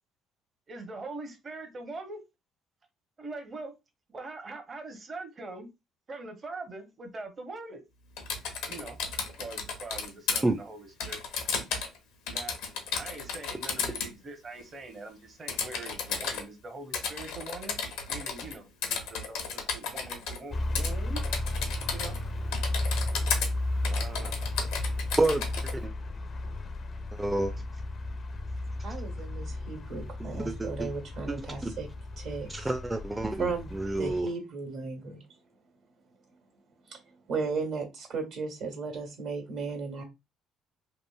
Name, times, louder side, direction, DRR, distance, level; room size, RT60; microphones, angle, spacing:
voice 1, 0.7-2.2 3.2-3.7 4.1-5.7 6.1-7.8 8.7-9.0 9.4-11.2 12.3-12.5 13.0-17.8 18.1-21.2 21.9-22.2 23.8-24.5, right 2 dB, 40° right, 0.7 m, -42 dB
Typing, 8.2-10.4 11.0-12.0 12.3-14.1 15.5-16.4 16.9-18.5 18.8-20.4 20.8-20.9 21.2-22.2 22.5-23.5 23.8-25.7, left 5 dB, 85° left, 0.7 m, -33 dB
sound 1, 20.5-34.2, left 2 dB, 45° left, 0.4 m, -34 dB
voice 2, 27.1-27.5 30.3-30.9 31.3-31.4 31.6-31.7 32.5-34.3, right 2 dB, 15° right, 0.4 m, -29 dB
voice 3, 28.8-31.9 32.2-32.7 33.4-33.7 34.0-35.2 36.9-37.0 37.3-40.0, right 4 dB, 75° right, 1.3 m, -35 dB
2.9 x 2.5 x 2.2 m
supercardioid pair, 70°, 0 cm